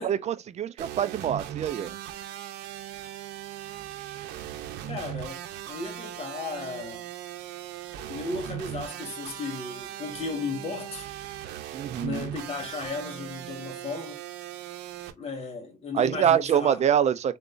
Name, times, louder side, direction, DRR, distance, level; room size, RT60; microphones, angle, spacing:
voice 1, 0.0-2.0 11.7-12.2 15.9-17.4, right 9 dB, 40° right, 0.5 m, -25 dB
sound 1, 0.8-15.1, right 12 dB, 85° right, 0.7 m, -39 dB
voice 2, 4.9-7.1 8.1-11.1 12.0-14.2 15.2-16.8, left 4 dB, 35° left, 1.8 m, -35 dB
3.9 x 3.5 x 2.5 m
cardioid pair, 110°, 17 cm